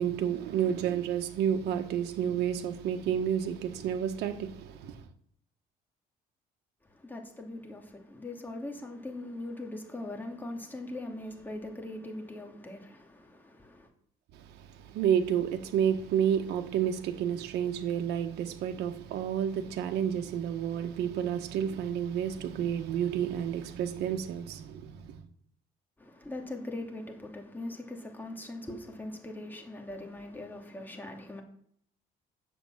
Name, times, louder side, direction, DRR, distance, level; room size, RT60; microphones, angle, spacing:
voice 1, 0.0-5.0 14.3-25.2, right 9 dB, 80° right, 1.3 m, -30 dB
voice 2, 6.8-13.9 26.0-31.4, left 2 dB, 10° left, 2.6 m, -41 dB
10.0 x 7.6 x 7.4 m
cardioid pair, 110°, 17 cm